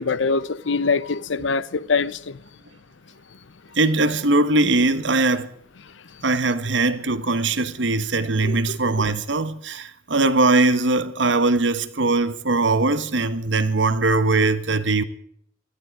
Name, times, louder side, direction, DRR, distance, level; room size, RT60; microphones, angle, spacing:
voice 1, 0.0-2.4 8.4-8.5, left 4 dB, 80° left, 0.7 m, -23 dB
voice 2, 3.8-5.5 6.2-15.0, right 2 dB, 70° right, 1.2 m, -20 dB
19.5 x 14.0 x 4.8 m
head